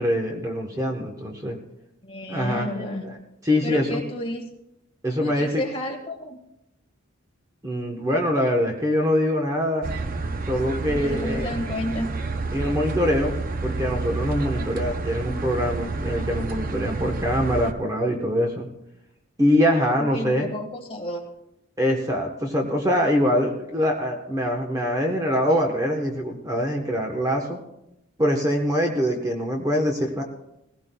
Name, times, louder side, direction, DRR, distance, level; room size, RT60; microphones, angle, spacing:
voice 1, 0.0-1.6 2.3-3.2 3.4-4.0 5.0-5.6 7.6-9.9 10.5-11.5 12.5-13.3 13.6-18.7 19.4-20.5 21.8-27.6 28.2-30.2, equal, 15° right, 1 dB, 1.1 m, -24 dB
voice 2, 2.0-3.0 3.6-4.4 5.2-6.4 10.9-12.1 14.5-14.7 20.0-21.2, left 1 dB, 25° left, 1 dB, 1.7 m, -32 dB
sound 1, 9.8-17.7, right 3 dB, 40° right, 0.6 m, -29 dB
18.5 x 16.5 x 2.3 m, 0.85 s
head